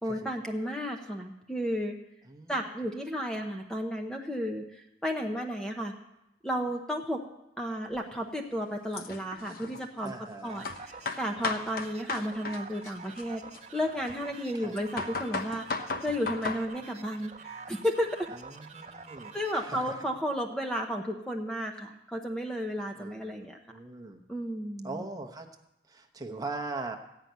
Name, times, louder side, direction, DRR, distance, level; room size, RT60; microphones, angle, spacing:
voice 1, 0.0-1.9 2.5-5.9 6.4-7.2 7.6-10.1 10.4-13.4 13.7-15.6 16.0-18.1 19.3-23.6 24.3-25.0, equal, 5° left, 2 dB, 0.8 m, -33 dB
voice 2, 2.3-2.6 10.0-10.7 14.5-14.7 18.3-20.1 22.9-24.2 24.8-25.5 25.9-27.0, right 3 dB, 20° right, 4 dB, 0.9 m, -41 dB
sound 1, 7.9-8.0 8.9-10.1 10.6-12.6 12.8-14.3 14.8-16.6, left 4 dB, 50° left, 0.9 m, -35 dB
sound 2, 10.4-20.2, right 4 dB, 35° right, 1.3 m, -47 dB
14.5 x 5.8 x 9.3 m, 0.90 s
head